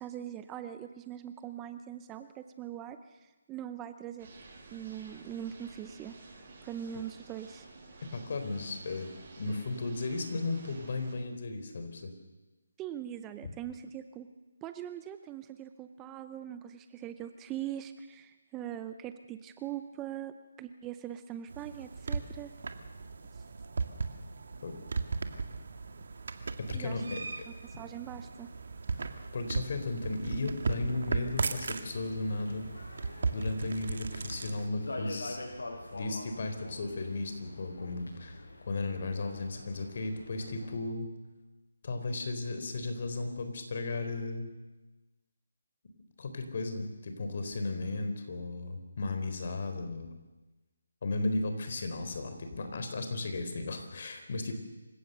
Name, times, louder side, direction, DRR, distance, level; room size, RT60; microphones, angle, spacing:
voice 1, 0.0-4.4 4.7-6.2 6.6-7.7 12.8-14.3 14.6-22.5 23.3-23.4 26.7-27.0 27.6-28.5, right 11 dB, 15° right, 10 dB, 0.7 m, -42 dB
sound 1, 4.2-11.1, right 3 dB, 40° right, 7.9 m, -52 dB
voice 2, 8.1-12.1 13.4-13.5 24.6-24.7 26.6-27.2 29.3-32.7 33.3-35.4 35.9-41.1 41.8-44.5 46.2-50.1 51.0-54.6, left 2 dB, 50° left, 7 dB, 3.9 m, -35 dB
sound 2, 21.5-34.7, right 4 dB, 60° right, 1.9 m, -37 dB
sound 3, 30.7-40.7, left 2 dB, 80° left, 6.9 m, -46 dB
27.0 x 16.5 x 6.8 m, 1.1 s
hypercardioid pair, 160°, 0 cm